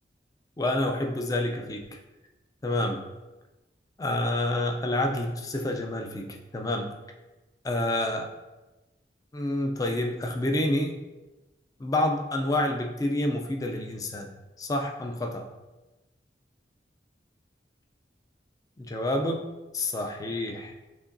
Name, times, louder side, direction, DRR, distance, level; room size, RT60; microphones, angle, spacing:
voice 1, 0.6-2.0 2.6-3.0 4.0-6.9 7.6-8.3 9.3-11.0 11.8-14.3 14.6-15.5 18.8-20.7, left 1 dB, 20° left, 3 dB, 0.3 m, -28 dB
4.9 x 2.9 x 2.5 m, 1.1 s
head